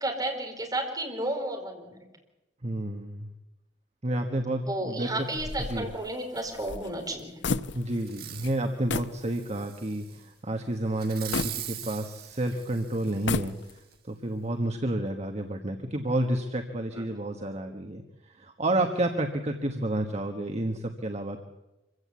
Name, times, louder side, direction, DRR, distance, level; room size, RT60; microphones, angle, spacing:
voice 1, 0.0-2.0 4.6-7.4 16.9-17.1, right 1 dB, 20° right, 2 dB, 4.8 m, -32 dB
voice 2, 2.6-3.3 4.0-5.1 5.7-5.9 7.7-13.5 14.1-21.4, right 1 dB, 40° right, 4 dB, 1.5 m, -30 dB
sound 1, 5.3-8.2 8.4-8.6 8.9-9.2 9.7-9.8 11.3-12.3 13.1-14.0, left 3 dB, 85° left, 0.8 m, -33 dB
Fireworks, 8.0-8.6 9.1-10.2 11.0-13.4 13.9-14.0, right 11 dB, 60° right, 1.9 m, -41 dB
26.0 x 16.0 x 8.4 m, 1.0 s
head